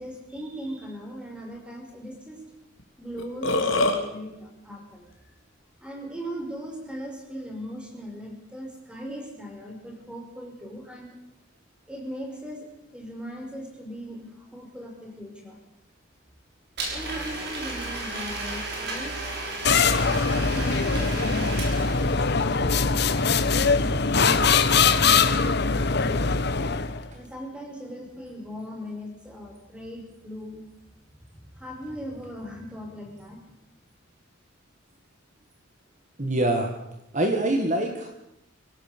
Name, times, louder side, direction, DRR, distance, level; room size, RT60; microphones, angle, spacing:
voice 1, 0.0-2.4 3.0-5.1 5.8-11.2 11.9-15.6 16.9-19.2 20.3-26.4 27.1-30.6 31.4-33.4, equal, 5° right, 2 dB, 5.4 m, -38 dB
Burping eructation, 2.8-2.9 3.2-4.0, left 2 dB, 90° left, 3.1 m, -23 dB
Domestic sounds home sounds, 16.8-22.4, right 2 dB, 55° right, 6.2 m, -33 dB
sound 1, 19.7-27.1, left 5 dB, 55° left, 1.2 m, -22 dB
voice 2, 36.2-36.7 37.1-38.1, right 1 dB, 40° right, 4 dB, 2.0 m, -24 dB
25.0 x 17.0 x 7.0 m, 0.86 s
head